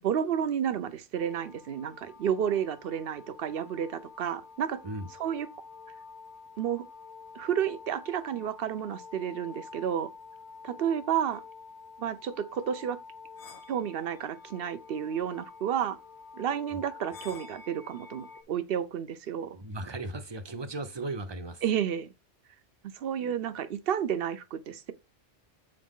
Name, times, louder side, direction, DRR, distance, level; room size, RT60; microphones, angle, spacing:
voice 1, 0.0-4.8 5.2-5.5 6.6-6.8 7.3-10.1 10.6-11.4 12.0-13.0 13.7-16.0 16.3-19.6 21.6-22.1 22.9-24.9, right 9 dB, 65° right, 0.8 m, -31 dB
sound 1, 1.1-18.4, left 4 dB, 80° left, 1.4 m, -49 dB
voice 2, 19.5-21.6, right 2 dB, 30° right, 0.6 m, -36 dB
7.8 x 3.8 x 3.6 m
omnidirectional pair, 1.1 m